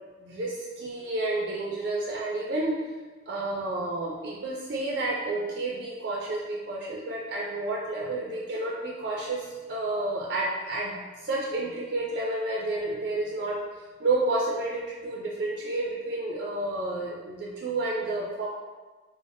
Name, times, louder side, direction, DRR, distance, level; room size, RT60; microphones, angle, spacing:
voice 1, 0.2-2.8 3.3-11.0 11.2-13.6 14.0-18.5, right 2 dB, 55° right, -3 dB, 0.4 m, -30 dB
3.4 x 2.0 x 2.5 m, 1.3 s
head